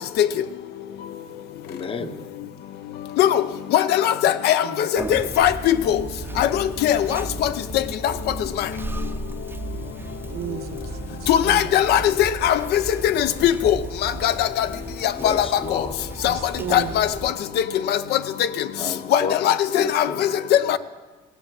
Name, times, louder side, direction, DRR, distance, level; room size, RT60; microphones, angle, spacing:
voice 1, 1.7-2.1 15.2-16.2 18.8-20.3, left 5 dB, 30° left, 0.8 m, -31 dB
voice 2, 3.7-4.6 4.9-6.0 6.4-7.5 11.3-12.8 13.1-13.8 14.0-14.7 15.0-15.5 16.2-16.3 16.7-17.1 17.9-18.0 19.1-20.8, left 11 dB, 75° left, 0.6 m, -20 dB
Conversation, 5.0-17.3, right 3 dB, 15° right, 0.6 m, -35 dB
voice 3, 10.3-11.6 16.3-16.9, right 9 dB, 70° right, 1.2 m, -34 dB
16.0 x 8.4 x 7.4 m
cardioid pair, 110°, 17 cm